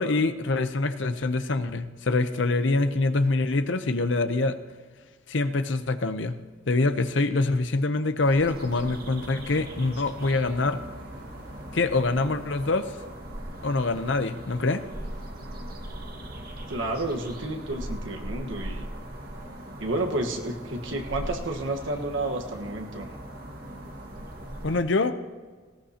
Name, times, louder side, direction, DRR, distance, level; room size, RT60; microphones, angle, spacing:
voice 1, 0.0-4.6 5.3-6.3 6.7-10.8 11.7-12.9 13.6-14.8 24.6-25.2, left 3 dB, 65° left, 10 dB, 0.8 m, -25 dB
sound 1, 8.2-24.8, right 1 dB, 50° right, 1.7 m, -39 dB
voice 2, 16.7-18.9 19.8-23.1, right 2 dB, 75° right, 3 dB, 1.4 m, -31 dB
19.0 x 16.5 x 2.9 m, 1.4 s
head